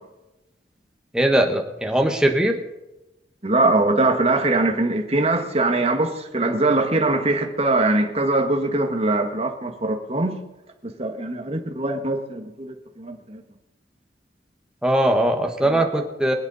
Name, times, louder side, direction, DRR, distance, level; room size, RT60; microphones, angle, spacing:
voice 1, 1.1-2.6 14.8-16.3, right 1 dB, 5° right, 2 dB, 1.4 m, -20 dB
voice 2, 3.4-10.4 10.8-13.4 15.6-15.9, right 2 dB, 35° right, 3 dB, 1.6 m, -22 dB
25.0 x 8.3 x 4.2 m, 0.98 s
head